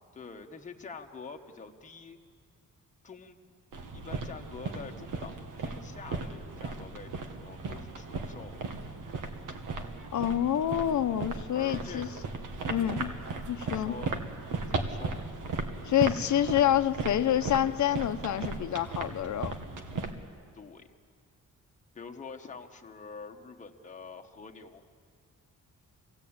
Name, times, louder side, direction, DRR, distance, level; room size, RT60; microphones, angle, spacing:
voice 1, 0.1-2.2 3.0-3.4 3.9-8.6 11.5-12.2 12.7-13.2 13.7-14.2 14.6-15.2 20.5-20.9 21.9-24.8, left 4 dB, 25° left, 3 dB, 1.2 m, -46 dB
sound 1, 3.7-20.1, right 3 dB, 75° right, 1.7 m, -37 dB
voice 2, 10.1-12.1 12.7-13.1 13.5-13.9 15.9-19.5, left 11 dB, 65° left, 11 dB, 0.8 m, -27 dB
25.0 x 16.5 x 8.7 m, 2.1 s
wide cardioid pair, 170°, 32 cm